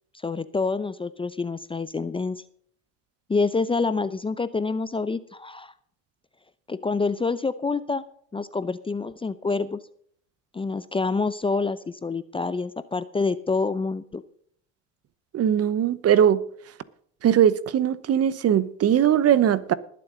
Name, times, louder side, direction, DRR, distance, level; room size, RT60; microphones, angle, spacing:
voice 1, 0.2-2.4 3.3-5.7 6.7-8.0 8.3-9.8 10.5-14.2, left 4 dB, 15° left, 0.6 m, -27 dB
voice 2, 15.3-16.4 17.2-19.7, right 9 dB, 40° right, 1.0 m, -20 dB
20.5 x 7.7 x 3.9 m
supercardioid pair, 90°, 38 cm